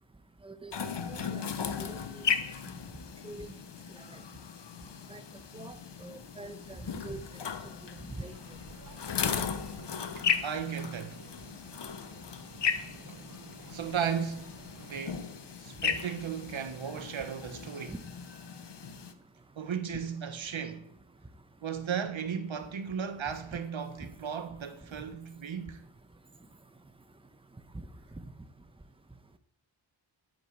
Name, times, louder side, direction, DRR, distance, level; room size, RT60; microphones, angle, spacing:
sound 1, 0.7-19.1, left 7 dB, 60° left, 1.2 m, -36 dB
voice 1, 1.1-1.4 1.8-2.2 3.2-3.5 5.1-5.2 5.5-5.7 6.0-7.2 8.2-8.3 17.9-18.0, right 2 dB, 10° right, 1.1 m, -43 dB
sound 2, 8.0-15.0, right 3 dB, 40° right, 2.1 m, -53 dB
voice 2, 10.4-11.2 13.1-13.3 13.7-15.3 15.6-17.9 19.6-20.9 21.6-25.8, right 7 dB, 70° right, 1.4 m, -35 dB
10.0 x 9.3 x 8.1 m
wide cardioid pair, 100°, 48 cm